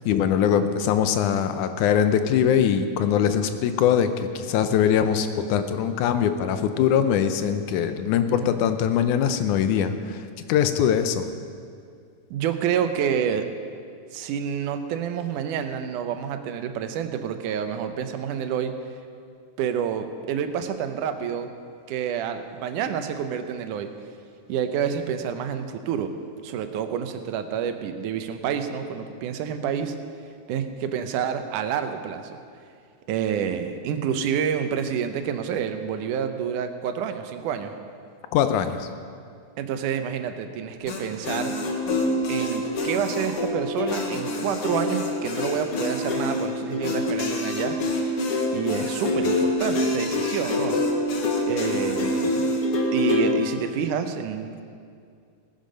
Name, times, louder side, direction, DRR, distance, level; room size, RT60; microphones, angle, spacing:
voice 1, 0.0-4.1 4.4-11.3 38.3-38.9, left 8 dB, 80° left, 9 dB, 2.2 m, -22 dB
voice 2, 12.3-13.5 14.1-18.7 19.6-21.5 21.9-23.9 24.5-26.1 26.4-30.0 30.5-32.4 33.1-37.8 39.6-41.5 42.3-47.8 48.5-50.8 51.4-52.5 52.9-54.6, right 8 dB, 90° right, 8 dB, 2.4 m, -28 dB
sound 1, 40.9-53.3, left 1 dB, 55° left, 2.0 m, -26 dB
17.5 x 10.5 x 5.3 m, 2.3 s
omnidirectional pair, 3.5 m